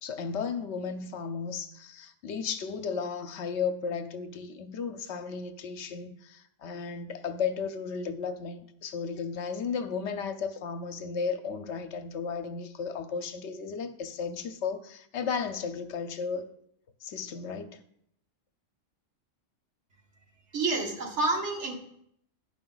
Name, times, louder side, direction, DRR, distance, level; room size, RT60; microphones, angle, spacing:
voice 1, 0.0-16.5 17.0-17.8, left 5 dB, 70° left, 0.9 m, -34 dB
voice 2, 20.5-21.8, right 3 dB, 70° right, 1.6 m, -28 dB
10.5 x 5.1 x 3.8 m
omnidirectional pair, 1.2 m